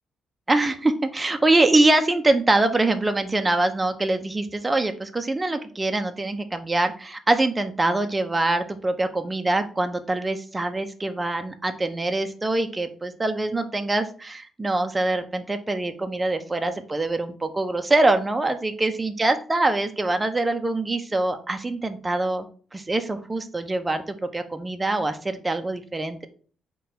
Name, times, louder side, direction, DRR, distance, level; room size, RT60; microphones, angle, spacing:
voice 1, 0.5-22.5 22.7-26.3, right 2 dB, 20° right, 7 dB, 0.4 m, -24 dB
3.9 x 2.2 x 4.1 m, 0.42 s
cardioid pair, 90°, 0 cm